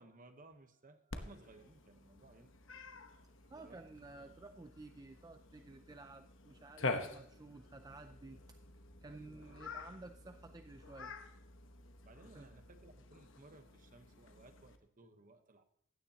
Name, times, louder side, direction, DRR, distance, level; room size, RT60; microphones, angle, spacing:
voice 1, 0.0-2.5 3.1-3.8 4.1-4.2 9.1-9.5 12.0-15.6, right 2 dB, 45° right, 8 dB, 1.1 m, -60 dB
Cat, 1.1-14.8, left 3 dB, 75° left, 1.0 m, -47 dB
voice 2, 3.5-8.6 9.0-11.1 12.3-12.5, right 2 dB, 20° right, 8 dB, 0.4 m, -53 dB
16.0 x 9.7 x 2.9 m, 0.68 s
head